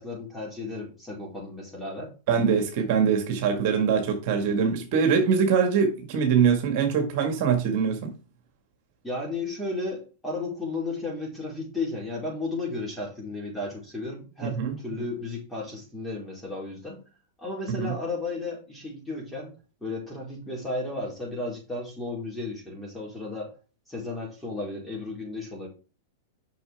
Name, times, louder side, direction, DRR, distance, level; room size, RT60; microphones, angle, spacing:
voice 1, 0.0-2.1 9.0-17.0 17.4-19.5 19.8-23.5 23.9-25.7, left 2 dB, 5° left, 4.5 m, -34 dB
voice 2, 2.3-8.1 14.6-14.8 17.7-17.9, right 6 dB, 55° right, 1.8 m, -23 dB
6.9 x 6.1 x 3.5 m
hypercardioid pair, 125°, 0 cm